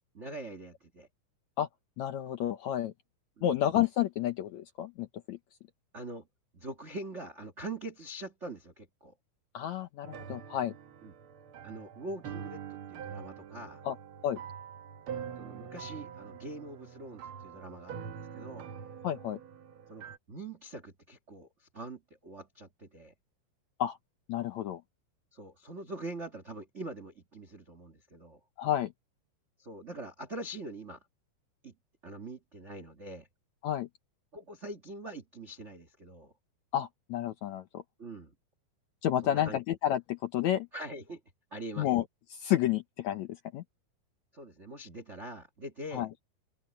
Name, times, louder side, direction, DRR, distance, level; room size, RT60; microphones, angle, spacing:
voice 1, 0.1-1.1 3.4-3.6 5.9-6.3 6.5-9.1 11.0-11.1 11.6-13.8 15.4-18.7 19.9-23.1 25.3-28.4 29.6-31.0 31.6-31.7 32.0-33.3 34.3-36.3 38.0-38.3 39.2-39.6 40.7-41.2 41.5-41.9 44.3-46.1, right 2 dB, 55° right, 0.7 m, -43 dB
voice 2, 2.0-2.9 3.4-5.4 9.5-10.7 13.8-14.0 14.2-14.4 19.0-19.4 23.8-24.0 24.3-24.8 28.6-28.9 33.6-33.9 36.7-37.8 39.0-40.7 41.8-42.0 42.3-43.6 45.9-46.1, left 12 dB, 70° left, 1.8 m, -30 dB
sound 1, 10.0-20.2, right 7 dB, 80° right, 1.2 m, -44 dB
open air
omnidirectional pair, 4.2 m